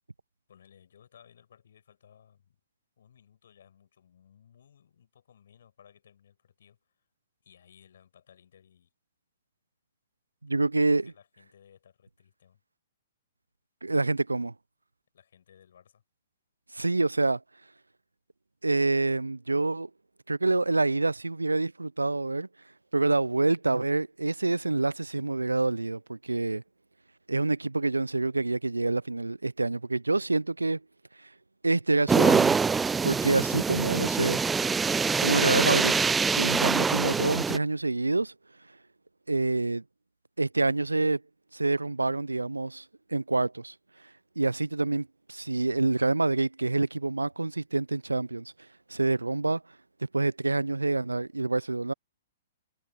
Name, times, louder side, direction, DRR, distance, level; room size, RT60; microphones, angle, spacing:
voice 1, 0.5-2.6 3.0-7.1 7.4-8.9 10.5-12.6 15.1-16.0, left 8 dB, 60° left, 7.5 m, -59 dB
voice 2, 10.4-11.1 13.8-14.5 16.7-17.4 18.6-19.9 20.3-22.5 22.9-26.6 27.3-30.8 31.2-31.3 31.6-32.6 33.0-34.4 35.2-36.0 36.3-38.3 39.3-39.8 40.4-41.2 41.5-42.8 43.1-43.7 44.4-48.5 48.9-49.6 50.1-51.9, right 3 dB, 85° right, 0.4 m, -27 dB
sound 1, 32.1-37.6, right 5 dB, 10° right, 0.3 m, -24 dB
figure-of-eight pair, 115°, 0 cm